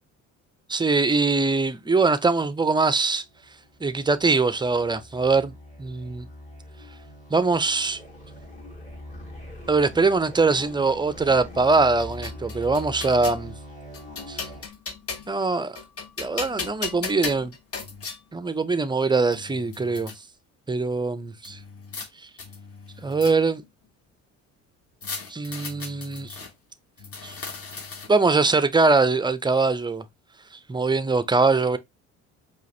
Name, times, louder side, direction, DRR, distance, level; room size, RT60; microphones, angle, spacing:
voice 1, 0.7-3.2 3.8-5.5 5.8-6.3 7.3-8.0 9.7-13.5 14.3-14.4 15.3-15.8 16.2-17.5 18.3-20.1 20.7-21.6 23.0-23.6 25.3-26.4 27.2-27.3 28.1-30.0 30.7-31.8, right 3 dB, 10° right, 0.5 m, -22 dB
sound 1, 3.2-14.7, left 1 dB, 20° left, 2.2 m, -42 dB
sound 2, 11.7-13.4 13.9-15.4 15.7-18.2 18.9-19.0 19.3-20.2 21.4-22.1 22.4-23.7 25.0-26.5 27.0-28.3, left 5 dB, 40° left, 1.2 m, -36 dB
4.8 x 2.5 x 3.2 m
hypercardioid pair, 60°, 37 cm